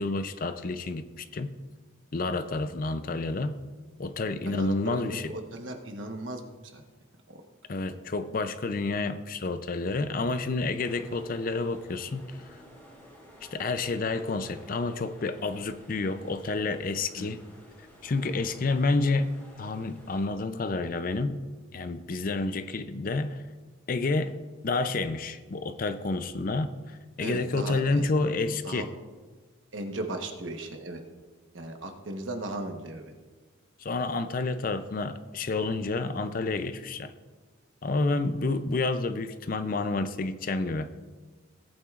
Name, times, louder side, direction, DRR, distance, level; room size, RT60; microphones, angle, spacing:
voice 1, 0.0-1.5 2.1-3.6 4.0-5.3 7.7-12.6 13.4-17.4 18.0-19.3 19.6-21.4 21.7-23.4 23.9-24.4 24.6-28.9 33.8-37.1 37.8-40.9, left 3 dB, 45° left, 11 dB, 0.5 m, -29 dB
voice 2, 4.4-6.4 6.7-6.8 7.3-7.4 7.9-8.0 17.1-17.3 18.4-18.5 22.3-22.5 27.2-28.0 28.6-28.9 29.7-31.0 31.5-33.1, right 2 dB, 65° right, 4 dB, 1.2 m, -37 dB
sound 1, 10.8-20.3, equal, 10° left, 3.1 m, -51 dB
17.5 x 8.8 x 2.5 m, 1.4 s
head